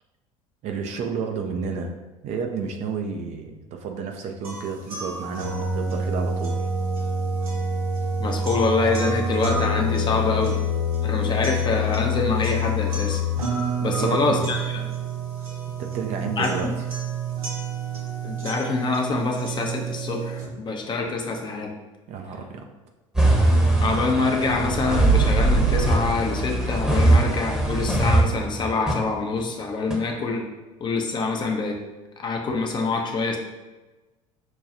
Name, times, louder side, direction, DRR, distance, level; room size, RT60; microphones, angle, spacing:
voice 1, 0.6-2.0 2.2-6.6 13.8-14.5 15.8-16.7 22.1-22.6, right 5 dB, 40° right, 3 dB, 0.5 m, -31 dB
sound 1, 4.4-20.4, equal, 75° right, 0.7 m, -27 dB
voice 2, 8.2-10.6 11.0-13.2 13.8-14.8 16.4-16.5 18.2-21.7 23.8-30.5 30.8-31.8 32.2-33.4, left 3 dB, 25° left, 2 dB, 0.6 m, -25 dB
sound 2, 23.1-28.9 29.4-29.5 29.9-30.0, right 2 dB, 5° right, 0.9 m, -20 dB
6.1 x 2.3 x 2.7 m, 1.2 s
figure-of-eight pair, 65°, 18 cm